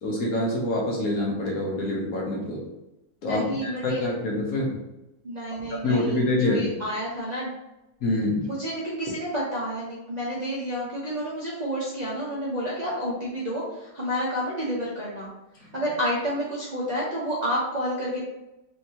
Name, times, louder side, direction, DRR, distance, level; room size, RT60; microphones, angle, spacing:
voice 1, 0.0-2.6 3.2-4.8 5.8-6.7 8.0-8.5, left 1 dB, 60° left, -3 dB, 1.2 m, -26 dB
voice 2, 3.2-4.0 5.2-7.5 8.5-15.3 15.6-18.2, equal, 45° right, -7 dB, 0.5 m, -30 dB
4.4 x 2.7 x 2.8 m, 0.95 s
omnidirectional pair, 2.0 m